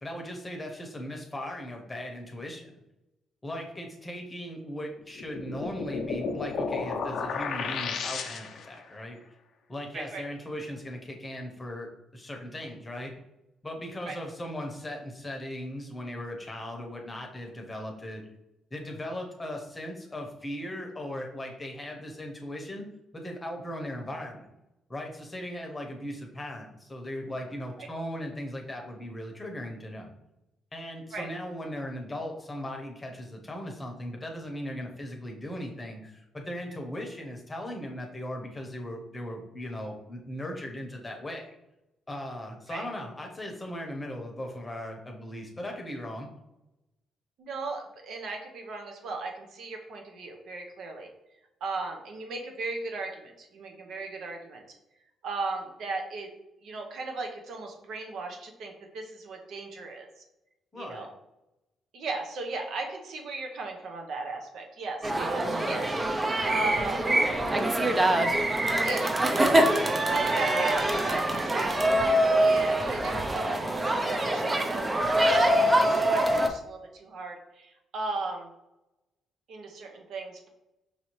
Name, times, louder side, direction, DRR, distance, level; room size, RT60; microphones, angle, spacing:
voice 1, 0.0-2.8 3.4-9.2 9.7-13.1 13.6-18.2 18.7-22.9 23.1-24.5 24.9-30.1 30.7-41.5 42.1-46.3 60.7-61.1, left 1 dB, 20° left, 2 dB, 0.8 m, -38 dB
sound 1, 5.2-8.8, left 4 dB, 70° left, 0.5 m, -33 dB
voice 2, 47.4-51.1 51.6-54.6 55.2-56.3 56.6-60.1 60.7-61.1 61.9-65.8 66.4-67.1 68.3-68.4 68.8-69.6 70.0-71.7 72.4-78.5 79.5-80.5, right 3 dB, 70° right, 2 dB, 0.8 m, -37 dB
sound 2, 65.0-76.5, right 1 dB, 20° right, 0.5 m, -24 dB
5.5 x 2.7 x 3.1 m, 0.93 s
cardioid pair, 90°, 0 cm